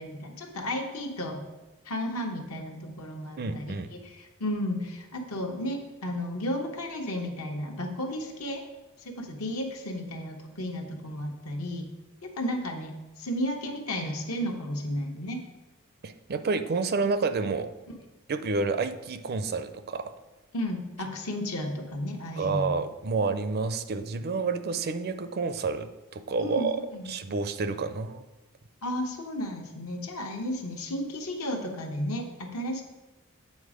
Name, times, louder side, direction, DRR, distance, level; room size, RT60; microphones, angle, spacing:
voice 1, 0.0-1.4 1.8-3.7 4.0-8.6 9.0-11.9 12.2-12.9 13.2-15.4 20.5-22.7 26.4-27.1 28.8-32.8, left 1 dB, 75° left, 3 dB, 1.2 m, -33 dB
voice 2, 3.4-3.9 16.0-17.7 18.3-20.1 22.4-26.8 27.1-28.2, right 4 dB, 45° right, 10 dB, 0.5 m, -29 dB
8.5 x 4.2 x 5.0 m, 1.1 s
head